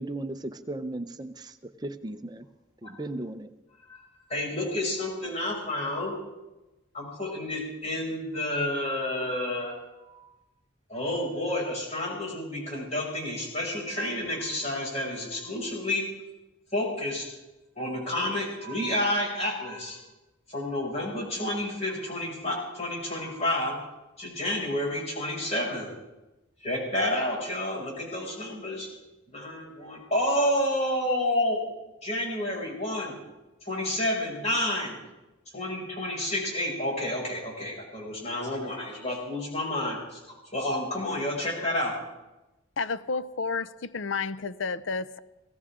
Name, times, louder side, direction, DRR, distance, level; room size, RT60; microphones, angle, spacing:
voice 1, 0.0-2.5 2.8-3.5, right 2 dB, 20° right, 0.7 m, -36 dB
voice 2, 4.3-6.1 6.9-9.7 10.0-10.3 10.9-16.0 16.7-17.3 17.8-20.0 20.5-23.8 24.2-25.9 26.6-28.9 29.3-31.6 32.0-33.2 33.6-34.9 35.5-40.2 40.5-41.9, left 1 dB, 35° left, 6.3 m, -30 dB
voice 3, 42.8-45.2, left 4 dB, 70° left, 0.6 m, -31 dB
21.5 x 17.5 x 3.7 m
head